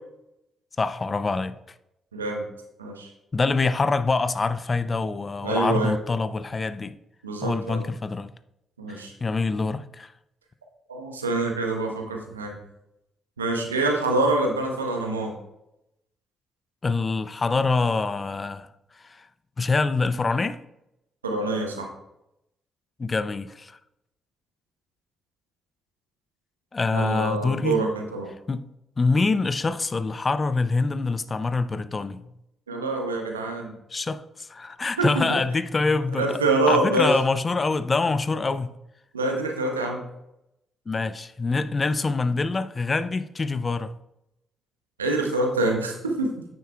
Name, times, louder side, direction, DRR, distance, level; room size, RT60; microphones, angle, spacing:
voice 1, 0.8-1.6 3.3-7.0 7.4-8.3 8.9-10.1 16.8-18.7 19.0-19.3 19.6-20.6 23.0-23.8 26.7-27.8 28.5-28.6 29.0-32.2 33.9-36.4 36.7-38.7 40.9-43.9, left 3 dB, 35° left, 0.5 m, -25 dB
voice 2, 2.1-2.4 2.8-3.1 5.4-6.0 7.2-7.8 8.8-9.1 10.9-12.6 13.4-15.3 21.2-21.9 26.9-28.3 32.7-33.7 35.0-35.2 36.2-37.1 39.1-40.0 45.0-46.4, right 2 dB, 90° right, 0.9 m, -25 dB
9.3 x 7.6 x 2.3 m
figure-of-eight pair, 40°, 0 cm